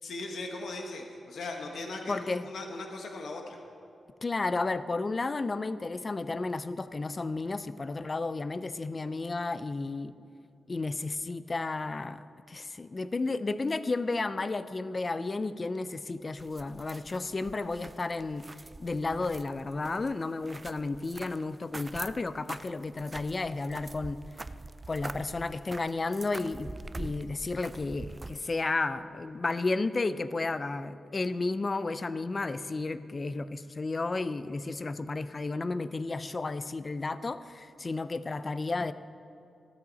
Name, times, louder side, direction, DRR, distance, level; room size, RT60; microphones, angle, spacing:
voice 1, 0.0-3.6, left 2 dB, 80° left, 2 dB, 1.4 m, -39 dB
voice 2, 2.1-2.4 4.2-10.1 10.7-18.4 18.8-24.2 24.9-26.7 27.0-38.9, left 3 dB, 35° left, 13 dB, 0.5 m, -32 dB
sound 1, 16.4-28.6, right 2 dB, 25° right, 0.4 m, -44 dB
14.5 x 13.0 x 4.1 m, 2.5 s
wide cardioid pair, 110°, 0 cm